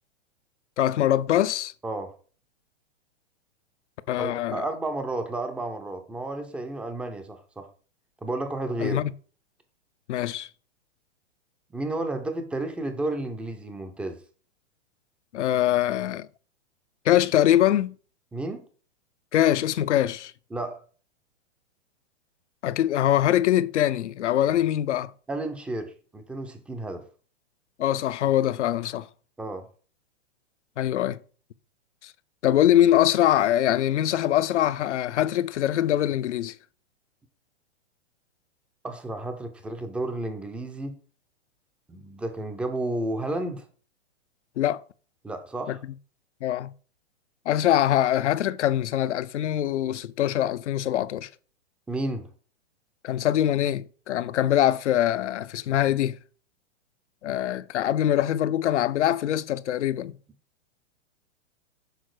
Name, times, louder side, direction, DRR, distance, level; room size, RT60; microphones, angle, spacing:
voice 1, 0.8-1.7 4.1-4.7 8.8-9.1 10.1-10.5 15.3-16.3 17.0-18.0 19.3-20.3 22.6-25.1 27.8-29.1 30.8-31.2 32.0-32.1 32.4-36.6 44.6-44.8 45.7-45.8 46.4-46.7 47.5-51.3 53.0-56.2 57.2-60.2, left 12 dB, 80° left, 0.6 m, -23 dB
voice 2, 1.8-2.1 4.2-7.7 8.2-9.0 11.7-14.2 18.3-18.7 20.5-20.8 24.5-24.6 25.3-27.1 29.4-29.7 38.8-41.0 41.9-43.7 45.2-45.8 51.9-52.3, right 2 dB, 5° right, 0.4 m, -32 dB
6.5 x 3.7 x 4.7 m
hypercardioid pair, 130°, 35 cm